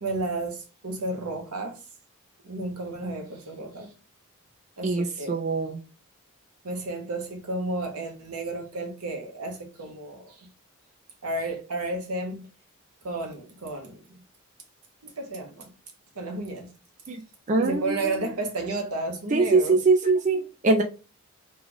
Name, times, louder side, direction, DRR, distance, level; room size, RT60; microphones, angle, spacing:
voice 1, 0.0-1.8 2.4-3.9 4.8-5.4 6.6-10.5 11.2-12.5 13.0-14.0 15.0-15.7 16.1-16.7 17.6-19.8, right 2 dB, 85° right, 1.0 m, -32 dB
voice 2, 4.8-5.8 17.1-17.2 17.5-18.3 19.3-20.8, right 3 dB, 35° right, 0.4 m, -23 dB
3.1 x 2.4 x 3.8 m
head